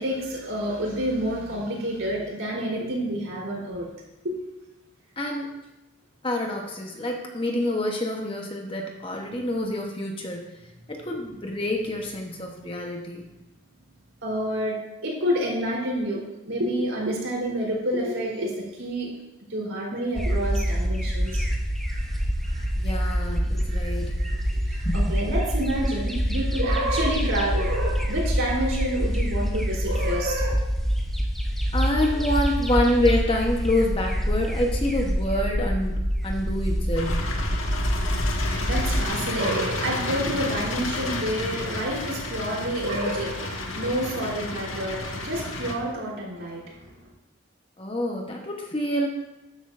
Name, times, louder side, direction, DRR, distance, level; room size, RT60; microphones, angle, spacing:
voice 1, 0.0-3.9 4.2-4.4 14.2-16.2 16.5-19.1 19.5-21.5 21.9-22.2 22.4-30.7 38.4-47.0, right 1 dB, 75° right, -3 dB, 3.9 m, -29 dB
voice 2, 5.2-5.5 6.2-10.4 10.9-13.2 22.8-24.2 24.8-24.9 31.7-37.2 47.8-49.1, left 1 dB, 25° left, 1 dB, 1.1 m, -27 dB
sound 1, 20.2-39.1, equal, ahead, 0.9 m, -26 dB
sound 2, 36.9-45.7, left 2 dB, 80° left, 1.5 m, -31 dB
13.0 x 10.5 x 2.6 m, 0.99 s
head